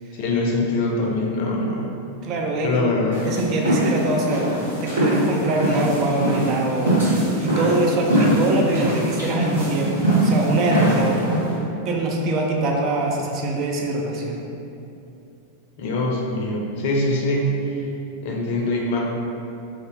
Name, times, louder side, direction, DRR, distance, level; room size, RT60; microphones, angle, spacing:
voice 1, 0.1-1.9 2.6-3.3 15.8-17.8 18.2-19.0, left 2 dB, 50° left, -2 dB, 0.5 m, -23 dB
voice 2, 2.2-2.9 3.2-11.4 11.8-14.4, right 2 dB, 35° right, 0 dB, 0.4 m, -24 dB
sound 1, 3.1-11.6, right 1 dB, 70° right, 0.9 m, -22 dB
2.5 x 2.4 x 3.3 m, 2.7 s
figure-of-eight pair, 90°, 0 cm